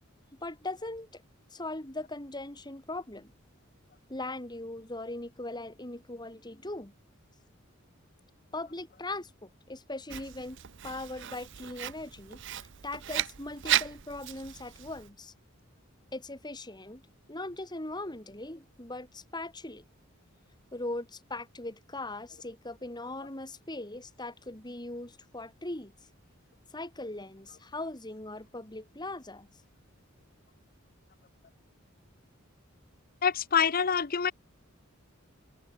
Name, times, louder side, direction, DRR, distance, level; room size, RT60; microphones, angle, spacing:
voice 1, 0.4-1.2 1.5-3.3 4.1-6.9 8.5-10.6 10.8-12.4 12.8-15.3 16.1-17.0 17.3-19.8 20.7-25.9 26.7-29.5, left 2 dB, 20° left, 3.0 m, -40 dB
Writing, 10.1-15.1, right 12 dB, 60° right, 0.7 m, -35 dB
voice 2, 33.2-34.3, left 7 dB, 45° left, 0.8 m, -26 dB
open air
head